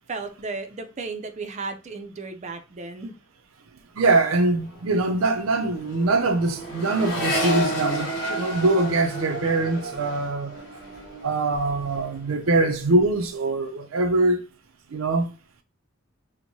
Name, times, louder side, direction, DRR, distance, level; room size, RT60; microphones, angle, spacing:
voice 1, 0.1-3.2, right 3 dB, 35° right, 0.5 m, -34 dB
voice 2, 4.0-10.5 11.2-14.4 14.9-15.3, right 2 dB, 90° right, 0.5 m, -23 dB
Accelerating revving vroom, 4.7-12.2 12.5-13.1, right 1 dB, 55° left, 1.7 m, -31 dB
4.5 x 2.1 x 2.7 m
head